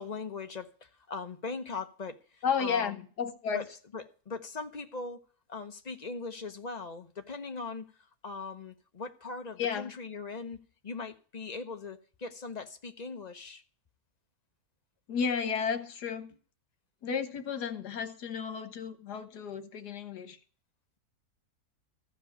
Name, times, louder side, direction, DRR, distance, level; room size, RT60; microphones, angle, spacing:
voice 1, 0.0-3.0 3.5-3.7 3.9-5.2 5.5-13.6, left 4 dB, 35° left, 0.8 m, -40 dB
voice 2, 2.4-3.6 9.6-9.9 15.1-16.3 17.0-20.4, left 6 dB, 80° left, 1.8 m, -33 dB
14.5 x 4.9 x 9.2 m
omnidirectional pair, 1.7 m